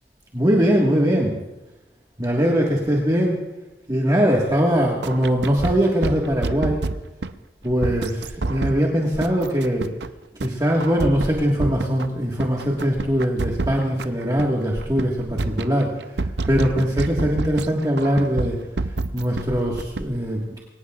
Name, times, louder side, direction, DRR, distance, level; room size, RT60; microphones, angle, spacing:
voice 1, 0.3-1.3 2.2-3.4 3.9-6.8 7.6-9.9 10.4-20.6, equal, 20° right, -2 dB, 1.7 m, -21 dB
sound 1, 5.0-7.3 7.8-8.8 9.2-10.1 10.4-10.5 10.8-12.1 12.4-14.5 14.8-15.1 15.4-17.7 18.0-19.4 19.8-20.0, right 3 dB, 75° right, 0.6 m, -27 dB
24.5 x 18.0 x 2.4 m, 1.0 s
head